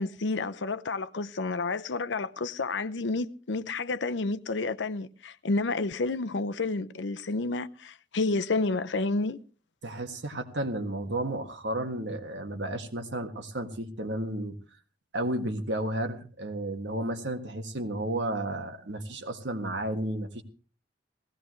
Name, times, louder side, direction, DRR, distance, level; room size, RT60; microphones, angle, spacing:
voice 1, 0.0-9.4, left 3 dB, 85° left, 0.7 m, -30 dB
voice 2, 9.8-14.6 15.1-20.4, right 1 dB, 80° right, 1.7 m, -32 dB
18.5 x 16.0 x 3.1 m
head